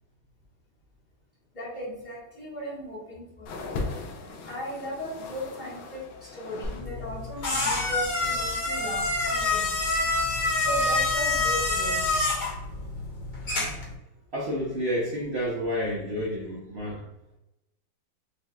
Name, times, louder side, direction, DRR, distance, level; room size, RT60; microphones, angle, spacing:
voice 1, 1.5-3.5 4.5-9.7 10.4-12.0, equal, 25° left, -6 dB, 1.3 m, -37 dB
sound 1, 3.5-6.9 7.1-8.0 8.8-8.9, left 3 dB, 70° left, 1.2 m, -39 dB
sound 2, 6.6-13.9, left 2 dB, 50° left, 0.5 m, -27 dB
voice 2, 14.3-17.0, equal, 75° right, -5 dB, 0.6 m, -30 dB
5.2 x 3.0 x 2.2 m, 0.94 s
omnidirectional pair, 2.2 m